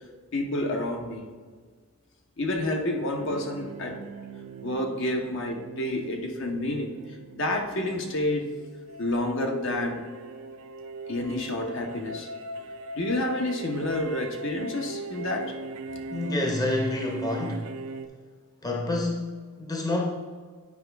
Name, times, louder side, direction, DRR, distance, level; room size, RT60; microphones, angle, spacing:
voice 1, 0.3-1.3 2.4-4.0 4.6-6.9 7.3-8.5 9.0-10.1 11.1-12.3 13.0-15.5, left 1 dB, 55° left, 2 dB, 0.8 m, -29 dB
sound 1, 3.2-18.1, right 3 dB, 80° right, 0.5 m, -40 dB
voice 2, 16.1-17.7 18.6-20.0, left 2 dB, 15° left, 0 dB, 0.7 m, -28 dB
9.5 x 4.9 x 3.4 m, 1.5 s
head